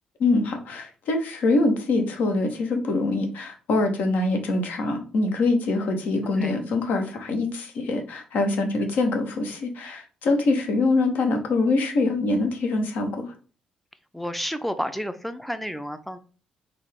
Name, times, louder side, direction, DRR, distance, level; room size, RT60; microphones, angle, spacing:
voice 1, 0.2-13.3, left 2 dB, 60° left, 4 dB, 0.7 m, -24 dB
voice 2, 14.1-16.2, equal, 5° left, 10 dB, 0.4 m, -31 dB
3.9 x 2.3 x 3.2 m, 0.38 s
figure-of-eight pair, 45°, 3 cm